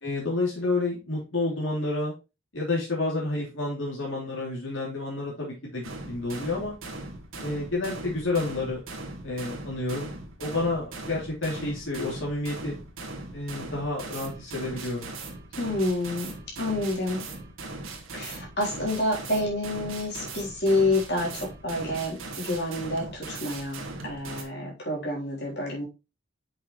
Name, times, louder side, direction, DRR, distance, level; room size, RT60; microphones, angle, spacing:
voice 1, 0.0-2.1 2.5-6.7 7.4-8.8 9.2-10.1 10.4-12.8 13.3-15.1, left 2 dB, 75° left, -4 dB, 3.1 m, -30 dB
sound 1, 5.8-24.4, right 2 dB, 85° right, 1.9 m, -39 dB
voice 2, 15.6-16.3 16.6-17.2 18.1-25.8, left 1 dB, 55° left, -3 dB, 3.7 m, -28 dB
7.1 x 6.0 x 3.2 m, 0.28 s
head